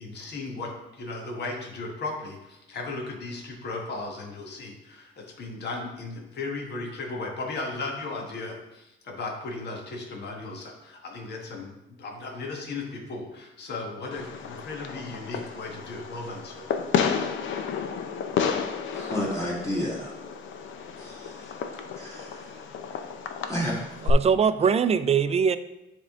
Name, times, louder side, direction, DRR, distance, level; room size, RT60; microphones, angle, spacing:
voice 1, 0.0-16.7, left 3 dB, 60° left, 0 dB, 1.4 m, -36 dB
Fireworks, 14.1-24.1, left 7 dB, 75° left, 0.7 m, -32 dB
voice 2, 18.9-20.2 21.0-21.5 22.0-22.6 23.5-23.8, equal, 15° left, -7 dB, 2.1 m, -31 dB
voice 3, 24.0-25.6, right 6 dB, 30° right, 12 dB, 0.4 m, -22 dB
9.8 x 3.6 x 3.6 m, 0.91 s
cardioid pair, 90°, 20 cm